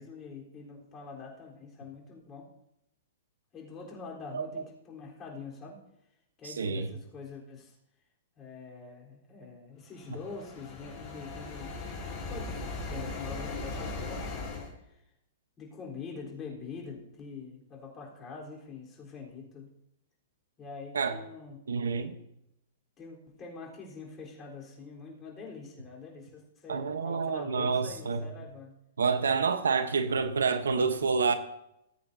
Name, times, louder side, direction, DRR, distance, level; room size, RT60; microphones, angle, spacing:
voice 1, 0.0-2.5 3.5-5.8 6.4-7.7 8.4-11.7 12.3-15.0 15.6-19.7 20.6-21.7 23.0-28.8, left 4 dB, 25° left, 3.8 m, -45 dB
voice 2, 6.4-6.9 20.9-21.2 21.7-22.1 26.7-28.2 29.0-31.3, right 5 dB, 80° right, 1.0 m, -28 dB
sound 1, 10.0-14.7, left 3 dB, 40° left, 4.9 m, -38 dB
19.5 x 8.8 x 2.7 m
hypercardioid pair, 120°, 0 cm